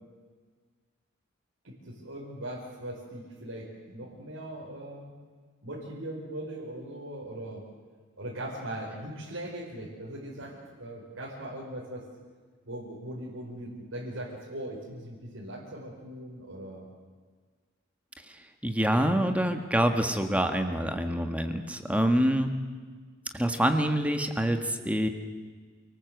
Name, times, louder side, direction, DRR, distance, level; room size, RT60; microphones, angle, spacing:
voice 1, 1.6-5.1 5.6-7.6 8.2-12.0 12.6-16.9 21.9-22.0, right 1 dB, 75° right, -5 dB, 5.2 m, -40 dB
voice 2, 18.6-22.6 23.3-25.1, equal, 5° right, 6 dB, 1.6 m, -26 dB
28.5 x 19.5 x 8.0 m, 1.5 s
head